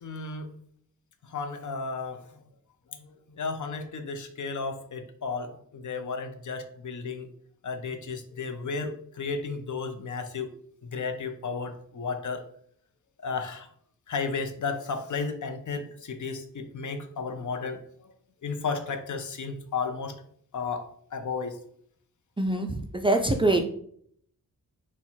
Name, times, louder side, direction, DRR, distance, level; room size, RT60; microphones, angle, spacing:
voice 1, 0.0-0.5 1.2-2.2 3.0-7.3 7.6-10.5 10.8-12.4 13.2-13.7 14.1-17.8 18.4-20.2 20.5-21.6, left 4 dB, 55° left, 7 dB, 0.6 m, -33 dB
voice 2, 22.4-23.7, right 2 dB, 15° right, 4 dB, 0.3 m, -24 dB
4.4 x 2.3 x 4.1 m, 0.63 s
wide cardioid pair, 95°, 36 cm